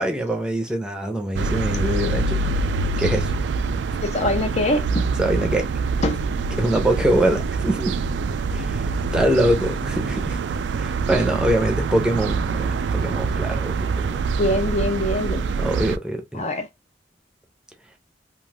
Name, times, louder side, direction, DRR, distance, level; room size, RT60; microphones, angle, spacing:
voice 1, 0.0-2.4 3.0-3.3 5.2-5.7 6.6-8.0 8.5-10.4 10.8-13.7 14.0-14.2 15.6-16.4, right 1 dB, 5° right, 0.6 m, -23 dB
sound 1, 1.4-16.0, right 4 dB, 80° right, 0.3 m, -25 dB
voice 2, 4.0-5.1 6.0-6.2 14.3-15.5 16.3-16.7, left 2 dB, 40° left, 0.5 m, -23 dB
2.5 x 2.4 x 3.4 m
head